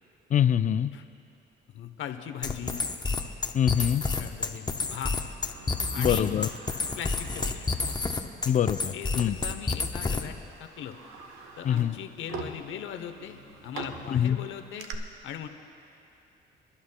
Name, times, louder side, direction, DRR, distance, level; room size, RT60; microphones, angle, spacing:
voice 1, 0.3-0.9 3.5-4.0 6.0-6.5 8.5-9.4 11.6-11.9 14.1-14.4, left 9 dB, 40° left, 13 dB, 0.4 m, -24 dB
voice 2, 1.7-2.8 4.1-5.2 5.9-6.3 7.0-7.7 8.9-11.0 11.6-14.9 15.2-15.5, left 9 dB, 75° left, 7 dB, 0.9 m, -39 dB
sound 1, 2.4-10.4, left 3 dB, 20° left, 0.8 m, -30 dB
Sliding door, 4.9-8.2 8.5-8.6 9.6-9.8 10.2-14.9, right 4 dB, 85° right, 1.0 m, -44 dB
28.0 x 11.5 x 2.2 m, 2.6 s
cardioid pair, 90°, 20 cm